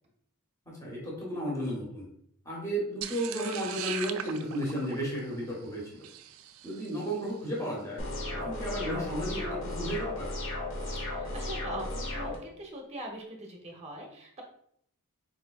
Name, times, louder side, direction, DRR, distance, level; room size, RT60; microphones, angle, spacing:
voice 1, 0.7-2.1 2.4-6.1 6.6-8.0 8.3-10.3, equal, 15° left, -3 dB, 1.3 m, -33 dB
sound 1, 3.0-7.3, right 9 dB, 65° right, 0.3 m, -40 dB
sound 2, 8.0-12.4, left 1 dB, 60° left, 1.2 m, -35 dB
voice 2, 11.1-14.4, right 1 dB, 30° right, 1 dB, 0.9 m, -42 dB
4.4 x 3.8 x 2.4 m, 0.68 s
head